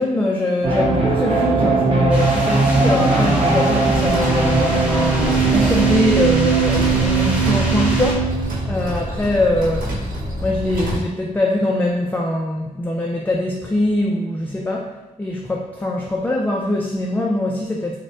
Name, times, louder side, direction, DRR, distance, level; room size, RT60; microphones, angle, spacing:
voice 1, 0.0-9.9 10.4-18.0, left 1 dB, 15° left, -1 dB, 0.3 m, -22 dB
sound 1, 0.6-8.5, right 4 dB, 45° right, 1.0 m, -19 dB
sound 2, 2.1-8.1, equal, 10° right, 0.9 m, -29 dB
sound 3, 3.9-11.0, right 1 dB, 80° right, 1.2 m, -26 dB
6.1 x 2.1 x 2.7 m, 1.0 s
wide cardioid pair, 140°, 14 cm